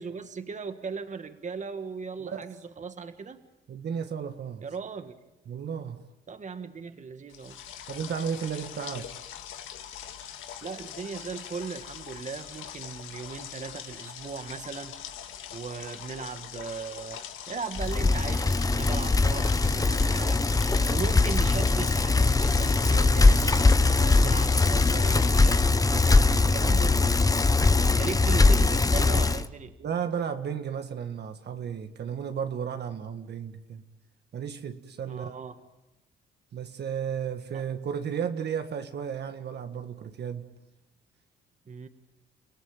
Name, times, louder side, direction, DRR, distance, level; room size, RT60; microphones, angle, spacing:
voice 1, 0.0-3.4 4.6-5.1 6.3-7.6 10.6-15.0 15.5-20.5 20.9-27.0 27.8-29.7 35.1-35.6 37.5-37.6 41.7-41.9, right 5 dB, 40° right, 1.7 m, -38 dB
voice 2, 3.7-4.6 5.5-6.0 7.9-9.1 29.8-33.8 34.3-35.4 36.5-40.5, right 7 dB, 60° right, 1.7 m, -33 dB
sound 1, 7.3-25.6, left 9 dB, 85° left, 1.8 m, -42 dB
Bicycle, 17.8-29.5, left 3 dB, 20° left, 0.9 m, -21 dB
30.0 x 17.0 x 9.1 m
cardioid pair, 90°, 20 cm